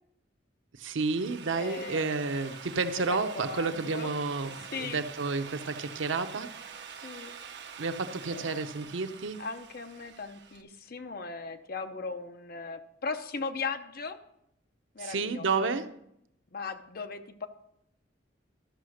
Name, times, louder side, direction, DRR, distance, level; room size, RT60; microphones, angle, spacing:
voice 1, 0.7-6.5 7.0-7.3 7.8-9.4 15.0-16.0, right 4 dB, 90° right, 9 dB, 0.7 m, -31 dB
Drill, 0.8-10.6, right 7 dB, 65° right, 0.9 m, -46 dB
voice 2, 1.5-2.4 2.9-3.2 3.5-4.1 4.7-5.0 7.0-7.4 8.3-8.5 8.8-8.9 9.4-14.2 14.9-15.5 16.5-17.5, left 4 dB, 55° left, 8 dB, 0.8 m, -38 dB
12.5 x 5.7 x 6.4 m, 0.78 s
head